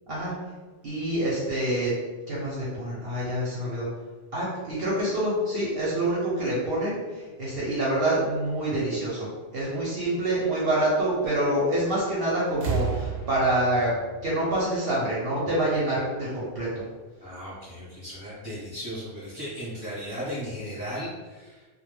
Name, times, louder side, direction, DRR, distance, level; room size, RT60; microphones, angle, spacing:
voice 1, 0.8-1.9 2.3-3.9 4.3-14.0 14.2-16.8, right 1 dB, 60° right, -6 dB, 0.7 m, -26 dB
sound 1, 11.9-12.2 12.5-15.3 16.4-16.5, right 6 dB, 85° right, 1.0 m, -33 dB
voice 2, 17.2-21.7, equal, 20° left, -9 dB, 0.7 m, -36 dB
2.2 x 2.1 x 3.1 m, 1.3 s
omnidirectional pair, 1.3 m